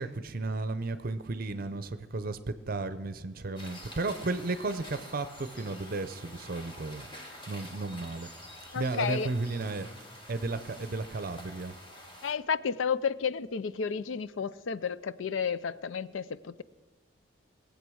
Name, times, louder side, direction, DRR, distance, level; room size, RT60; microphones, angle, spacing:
voice 1, 0.0-2.4 2.7-7.1 7.5-8.3 8.7-9.9 10.3-11.7, right 3 dB, 50° right, 0.6 m, -34 dB
sound 1, 3.6-12.3, left 1 dB, 25° left, 1.9 m, -48 dB
voice 2, 8.7-9.3 12.2-16.6, left 6 dB, 85° left, 0.5 m, -32 dB
20.0 x 8.2 x 6.3 m
head